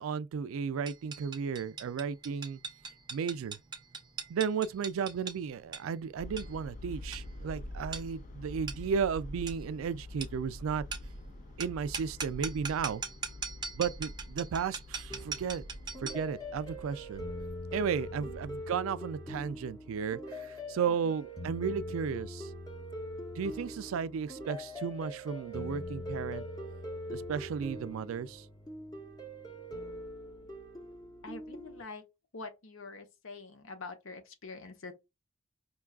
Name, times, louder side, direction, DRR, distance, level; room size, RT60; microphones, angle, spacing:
voice 1, 0.0-2.6 3.1-3.6 4.3-10.8 11.6-13.0 13.7-15.6 16.0-17.2 17.7-22.5 23.4-26.4 27.1-28.5, right 6 dB, 85° right, 0.3 m, -34 dB
sound 1, 0.9-16.3, right 5 dB, 20° right, 0.5 m, -42 dB
sound 2, 6.2-18.7, left 1 dB, 40° left, 0.4 m, -46 dB
sound 3, 15.1-31.8, equal, 20° left, 0.7 m, -42 dB
voice 2, 31.2-32.0 32.3-34.9, left 3 dB, 80° left, 0.9 m, -45 dB
5.2 x 2.3 x 2.3 m
head